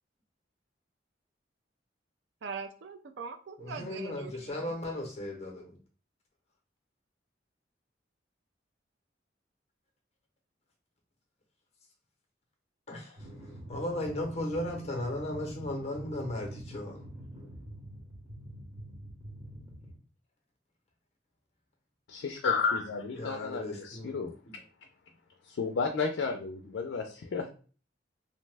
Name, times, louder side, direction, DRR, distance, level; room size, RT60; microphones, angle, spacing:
voice 1, 2.4-4.8, right 5 dB, 70° right, 7 dB, 0.4 m, -42 dB
voice 2, 3.6-5.8 12.9-13.2 13.7-17.0 23.1-24.1 24.5-24.6, left 1 dB, 35° left, 1 dB, 0.6 m, -36 dB
sound 1, 13.2-19.9, right 1 dB, 20° right, 0.9 m, -46 dB
voice 3, 22.1-24.3 25.6-27.5, left 5 dB, 75° left, 4 dB, 0.4 m, -32 dB
2.7 x 2.1 x 3.3 m, 0.39 s
head